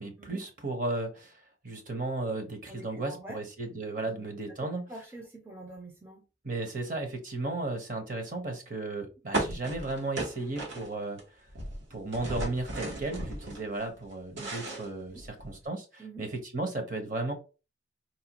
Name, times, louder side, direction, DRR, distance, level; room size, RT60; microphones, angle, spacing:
voice 1, 0.0-4.8 6.4-11.2 11.9-17.3, right 2 dB, 45° right, 5 dB, 0.9 m, -35 dB
voice 2, 2.7-3.4 4.0-4.3 4.9-6.2 15.1-15.2 16.0-16.2, right 1 dB, 10° right, 1 dB, 0.5 m, -46 dB
sound 1, 9.3-11.2 11.5-13.6 14.0-15.6, right 2 dB, 80° right, 1.1 m, -35 dB
4.1 x 2.2 x 2.9 m, 0.30 s
head